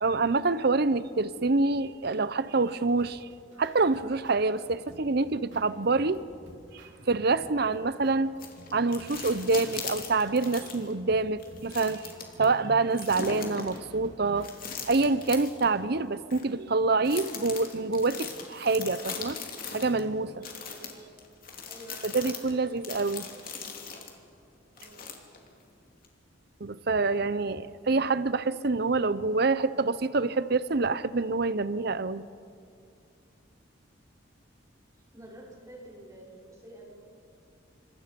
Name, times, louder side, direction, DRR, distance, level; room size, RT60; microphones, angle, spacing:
voice 1, 0.0-3.3 3.6-6.2 7.1-8.4 8.7-12.0 12.4-14.5 14.9-19.4 19.7-20.5 22.0-23.3 26.6-32.2, right 3 dB, 55° right, 15 dB, 0.8 m, -26 dB
sound 1, 2.7-16.2, right 1 dB, 80° right, 4.1 m, -52 dB
sound 2, 8.4-10.9 11.4-12.4 12.9-13.8 14.4-15.7 16.3-16.4 17.0-20.0 20.4-24.1 24.8-25.5 26.0-26.1, left 6 dB, 50° left, 3.1 m, -40 dB
voice 2, 20.7-21.1 21.6-22.8 24.8-25.0 35.1-37.0, right 1 dB, 15° right, -4 dB, 6.0 m, -49 dB
28.0 x 26.0 x 5.3 m, 2.3 s
head